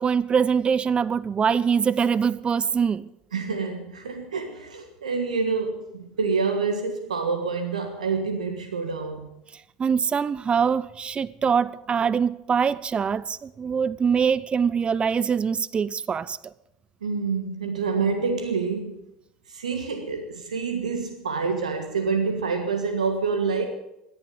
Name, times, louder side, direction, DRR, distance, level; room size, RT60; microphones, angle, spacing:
voice 1, 0.0-3.1 9.8-16.4, right 6 dB, 30° right, 0.6 m, -23 dB
voice 2, 3.3-9.3 17.0-19.0 19.5-23.7, right 4 dB, 85° right, 1.5 m, -27 dB
17.0 x 11.5 x 7.0 m
hypercardioid pair, 70°, 4 cm